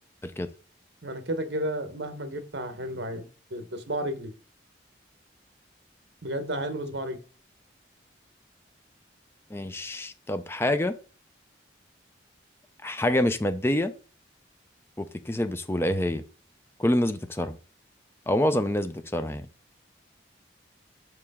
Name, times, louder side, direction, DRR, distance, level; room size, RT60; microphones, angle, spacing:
voice 1, 1.0-4.3 6.2-7.2, right 1 dB, 70° right, 1.1 m, -32 dB
voice 2, 9.5-11.0 12.8-13.9 15.0-16.2 16.8-17.6 18.3-19.5, left 1 dB, 15° left, 0.5 m, -26 dB
6.0 x 4.8 x 3.6 m
head